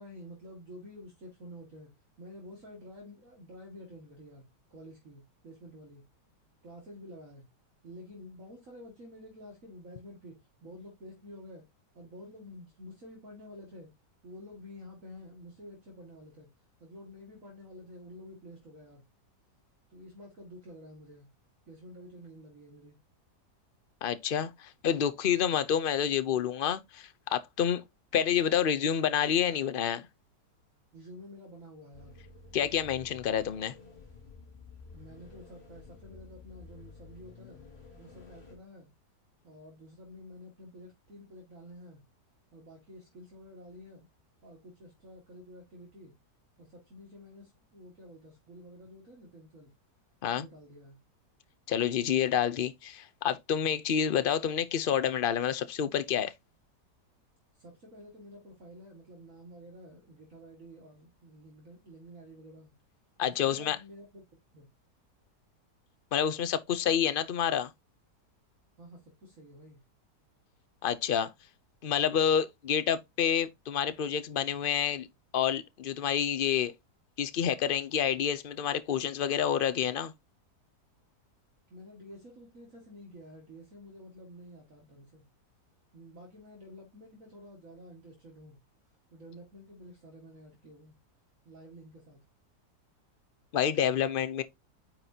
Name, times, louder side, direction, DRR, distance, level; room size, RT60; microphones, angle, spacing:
voice 1, 0.0-1.9 2.2-6.0 6.6-7.5 7.8-11.7 11.9-13.9 14.2-16.5 16.8-19.0 19.9-21.3 21.7-23.0 30.9-32.2 34.9-37.7 38.0-38.9 39.4-42.0 42.5-44.1 44.4-46.1 46.6-49.7 50.3-51.0 57.5-62.7 63.3-64.2 64.5-64.7 68.8-69.8 81.7-85.2 85.9-88.6 89.1-90.9 91.4-92.2, equal, 50° right, 2.4 m, -50 dB
voice 2, 24.0-27.8 28.1-30.1 32.5-33.7 50.2-50.5 51.7-56.3 63.2-63.8 66.1-67.7 70.8-71.3 71.8-75.1 75.3-76.7 77.2-80.1 93.5-94.4, left 8 dB, 55° left, 0.6 m, -28 dB
sound 1, 31.9-38.6, left 4 dB, 40° left, 2.6 m, -52 dB
9.1 x 5.9 x 2.8 m
omnidirectional pair, 1.8 m